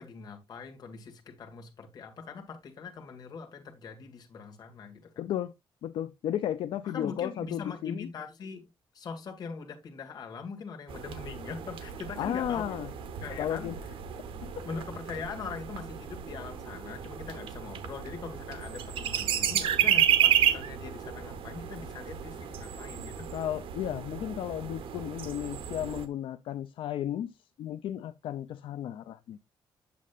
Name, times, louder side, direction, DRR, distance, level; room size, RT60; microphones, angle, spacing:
voice 1, 0.0-5.1 6.8-8.7 8.9-12.8 13.2-13.7 14.6-23.3, left 5 dB, 45° left, 1.8 m, -42 dB
voice 2, 5.2-5.5 5.8-8.1 12.2-12.9 13.4-13.7 14.4-14.6 23.3-29.4, left 11 dB, 75° left, 0.4 m, -34 dB
sound 1, 10.9-26.1, right 10 dB, 90° right, 1.0 m, -32 dB
8.5 x 7.4 x 2.4 m
cardioid pair, 155°, 9 cm